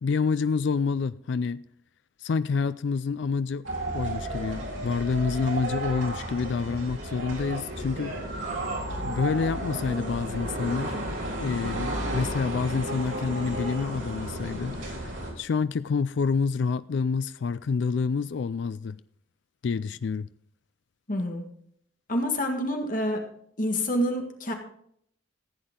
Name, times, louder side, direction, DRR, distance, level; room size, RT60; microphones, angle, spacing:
voice 1, 0.0-1.6 2.2-3.6 3.9-8.5 9.0-11.0 11.4-19.0 19.6-20.3, left 5 dB, 65° left, 0.4 m, -28 dB
sound 1, 3.6-15.3, right 1 dB, 75° right, 3.8 m, -33 dB
voice 2, 21.1-21.4 22.1-23.2 23.6-24.5, equal, 40° left, 1.7 m, -27 dB
15.0 x 8.8 x 3.8 m
head